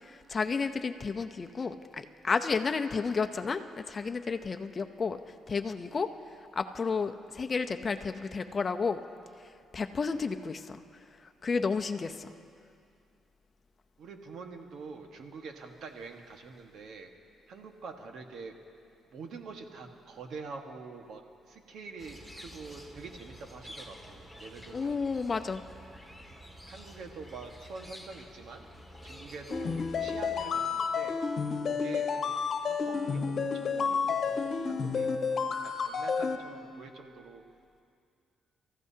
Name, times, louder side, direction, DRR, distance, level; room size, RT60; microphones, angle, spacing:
voice 1, 0.0-9.0 9.4-10.8 11.2-12.3 24.7-25.6, left 5 dB, 35° left, 7 dB, 0.7 m, -32 dB
voice 2, 14.0-17.1 17.5-18.5 19.1-21.2 21.5-25.0 26.7-28.7 29.0-31.2 31.7-37.4, right 4 dB, 70° right, 4 dB, 1.5 m, -46 dB
sound 1, 22.0-30.5, equal, 5° right, 1.7 m, -49 dB
sound 2, 29.5-36.4, left 5 dB, 55° left, 1.2 m, -30 dB
29.5 x 15.0 x 2.8 m, 2.4 s
cardioid pair, 90°, 0 cm